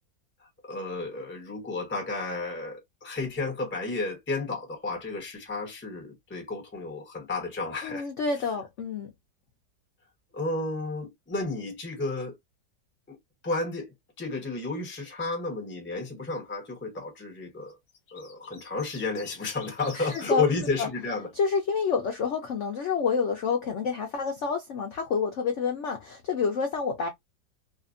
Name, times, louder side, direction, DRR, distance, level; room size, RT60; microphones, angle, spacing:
voice 1, 0.4-8.1 10.3-12.3 13.1-13.2 13.4-17.8 18.1-21.3, left 3 dB, 15° left, 0.4 m, -32 dB
voice 2, 7.8-9.1 19.9-20.5 20.8-20.9 21.3-27.1, left 5 dB, 75° left, 0.6 m, -28 dB
sound 1, 17.7-20.3 21.5-22.0, left 4 dB, 50° left, 0.9 m, -48 dB
2.8 x 2.5 x 2.4 m
omnidirectional pair, 1.9 m